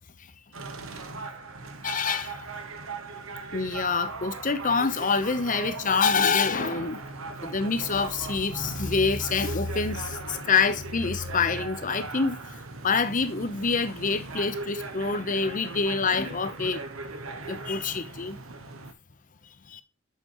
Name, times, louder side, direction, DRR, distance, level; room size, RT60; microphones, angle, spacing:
sound 1, 0.5-18.9, right 3 dB, 80° right, 1.3 m, -38 dB
voice 1, 1.8-2.5 3.5-7.0 7.4-12.4 12.8-16.8 17.5-18.4 19.7-19.8, left 5 dB, 40° left, 0.8 m, -26 dB
7.9 x 6.9 x 3.0 m
head